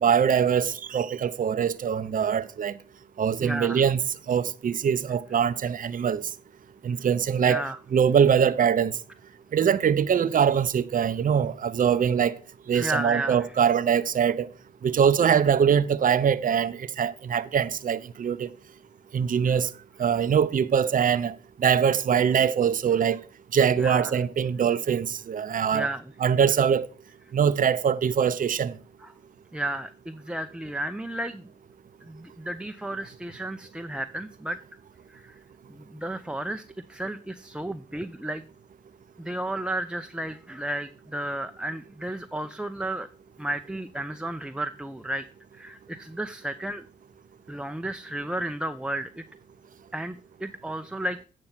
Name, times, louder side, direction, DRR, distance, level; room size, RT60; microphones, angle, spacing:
voice 1, 0.0-2.8 3.2-4.0 4.3-6.2 6.8-7.6 7.9-8.9 9.5-12.4 12.7-14.5 14.8-18.5 19.1-19.7 20.0-23.2 23.5-25.9 26.2-26.9 27.3-28.7, right 7 dB, 45° right, 0.6 m, -23 dB
voice 2, 3.4-3.8 7.4-7.8 12.7-13.5 19.5-19.6 23.8-24.2 25.7-26.0 29.0-29.1 29.5-31.5 32.0-34.6 35.1-35.3 35.7-36.6 36.9-38.4 39.2-43.1 43.4-45.2 45.5-46.9 47.5-49.2 49.9-51.3, right 1 dB, 5° right, 0.6 m, -33 dB
8.7 x 5.3 x 5.7 m
supercardioid pair, 45°, 19 cm